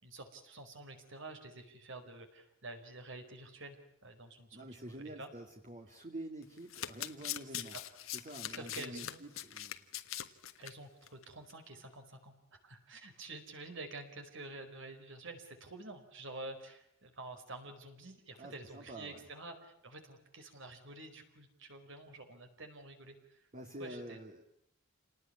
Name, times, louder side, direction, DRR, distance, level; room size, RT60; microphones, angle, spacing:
voice 1, 0.0-5.3 7.5-7.8 8.5-9.2 10.6-12.3 12.6-23.5 23.8-24.2, right 2 dB, 65° right, 6 dB, 4.8 m, -49 dB
voice 2, 4.5-7.7 8.1-9.8 18.4-19.2 23.5-24.4, right 1 dB, 40° right, 4 dB, 2.4 m, -47 dB
Domestic sounds home sounds, 6.4-10.7 11.1-11.2 11.5-11.6, left 12 dB, 80° left, 1.5 m, -42 dB
28.5 x 19.5 x 9.8 m, 0.75 s
head